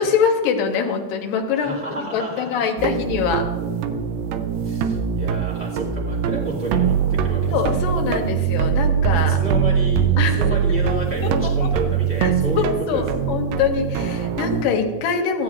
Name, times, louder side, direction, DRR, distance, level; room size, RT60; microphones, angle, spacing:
voice 1, 0.0-3.4 7.5-9.4 10.2-10.4 11.6-11.7 12.2-15.4, left 6 dB, 75° left, 3 dB, 2.6 m, -23 dB
voice 2, 1.5-2.6 4.6-7.8 9.1-13.4, equal, 5° left, -6 dB, 0.9 m, -31 dB
sound 1, 2.8-14.7, right 7 dB, 85° right, 2.3 m, -22 dB
16.0 x 8.2 x 2.4 m, 1.4 s
omnidirectional pair, 4.0 m